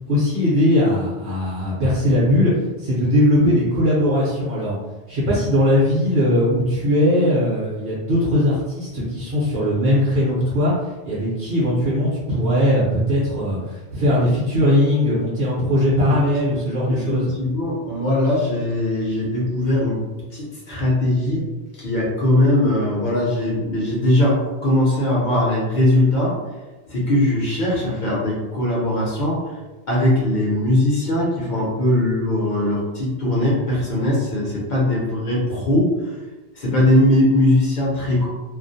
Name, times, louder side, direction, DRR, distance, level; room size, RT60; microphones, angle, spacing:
voice 1, 0.1-2.5 2.8-4.8 5.1-10.7 11.0-17.3, left 1 dB, 60° right, -7 dB, 0.9 m, -19 dB
voice 2, 16.9-20.0 20.3-21.5 21.7-26.4 26.9-29.5 29.9-35.9 36.5-38.3, left 1 dB, 50° left, -5 dB, 0.7 m, -20 dB
2.4 x 2.0 x 2.6 m, 1.2 s
omnidirectional pair, 1.2 m